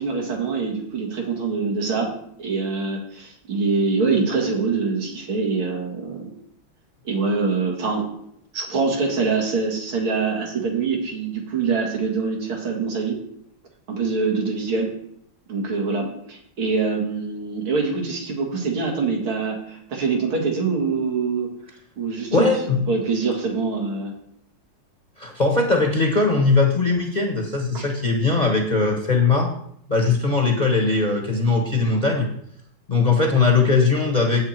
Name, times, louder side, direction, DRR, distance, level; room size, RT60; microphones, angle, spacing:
voice 1, 0.0-2.1 2.4-6.3 7.0-8.1 8.5-13.2 13.9-14.9 15.5-21.5 22.0-22.5 22.9-24.1 27.7-27.8 32.9-33.0, right 4 dB, 90° right, 0 dB, 3.0 m, -24 dB
voice 2, 22.3-22.8 25.2-29.5 29.9-32.3 32.9-34.4, left 4 dB, 30° left, 2 dB, 1.0 m, -20 dB
8.5 x 8.0 x 4.5 m, 0.71 s
omnidirectional pair, 2.3 m